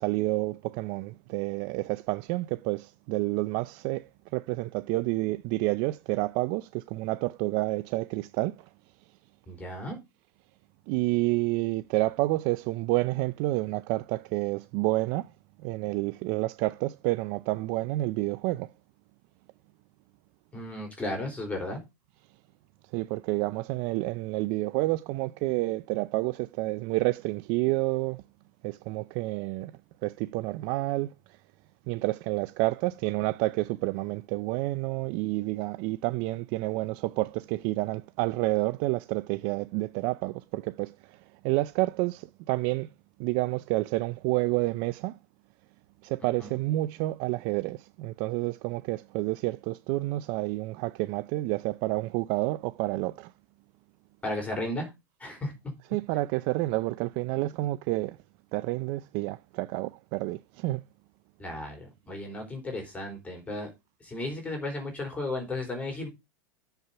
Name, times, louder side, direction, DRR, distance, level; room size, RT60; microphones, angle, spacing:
voice 1, 0.0-8.7 10.9-15.3 15.6-18.7 22.9-28.2 28.6-29.7 30.0-31.4 31.9-42.9 43.2-45.2 46.0-53.3 55.9-58.2 58.5-60.8, right 20 dB, 50° right, 0.5 m, -29 dB
voice 2, 9.5-10.0 20.5-21.8 46.4-46.5 54.2-54.9 55.2-55.5 61.4-63.7 64.0-66.1, left 1 dB, 10° left, 4.0 m, -34 dB
7.4 x 5.6 x 6.8 m
supercardioid pair, 120°, 11 cm